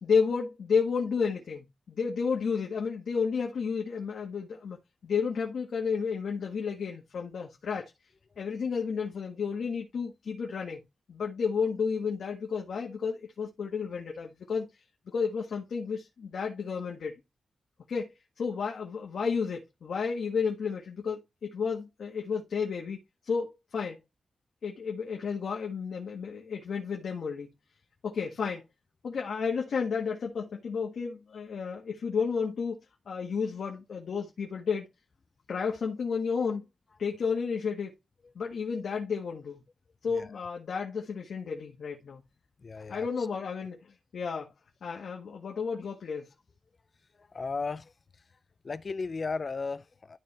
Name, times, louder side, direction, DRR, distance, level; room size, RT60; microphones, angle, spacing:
voice 1, 0.0-4.8 5.0-7.9 8.4-10.8 11.1-14.7 15.1-17.2 17.9-24.0 24.6-27.5 28.0-28.6 29.0-32.8 33.0-34.9 35.5-36.6 37.0-37.9 38.3-39.6 40.0-42.2 42.9-44.5 44.8-46.3, left 5 dB, 70° left, 1.6 m, -32 dB
voice 2, 42.6-43.5 47.1-47.9 48.6-50.2, left 4 dB, 40° left, 0.5 m, -36 dB
12.5 x 4.4 x 3.4 m
wide cardioid pair, 155°, 0 cm